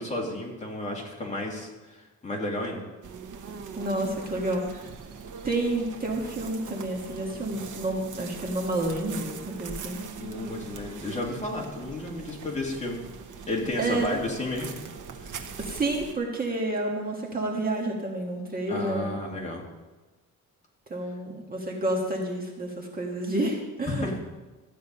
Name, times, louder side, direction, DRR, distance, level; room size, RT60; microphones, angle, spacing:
voice 1, 0.0-2.9 10.2-13.0 13.5-14.7 18.7-19.7 23.9-24.2, left 1 dB, 20° left, -2 dB, 2.3 m, -32 dB
sound 1, 3.0-16.1, right 5 dB, 65° right, 1.2 m, -41 dB
voice 2, 3.7-4.9 5.4-10.0 13.8-14.1 15.6-19.1 20.9-24.2, right 2 dB, 25° right, 0 dB, 1.6 m, -29 dB
14.0 x 9.4 x 5.4 m, 1.2 s
wide cardioid pair, 175°, 33 cm